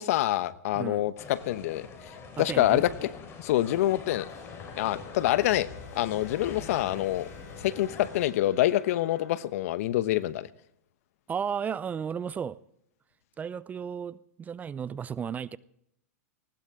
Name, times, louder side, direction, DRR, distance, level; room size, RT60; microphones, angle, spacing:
voice 1, 0.0-3.1 3.4-4.3 4.8-5.7 5.9-7.3 7.6-10.5, left 14 dB, 60° left, 1.0 m, -26 dB
voice 2, 0.7-1.1 2.4-2.8 11.3-12.6 13.4-15.6, right 7 dB, 20° right, 0.5 m, -34 dB
sound 1, 1.2-8.3, left 5 dB, 30° left, 4.2 m, -44 dB
sound 2, 4.3-9.5, left 5 dB, 90° left, 6.5 m, -50 dB
19.5 x 19.0 x 3.7 m
hypercardioid pair, 125°, 9 cm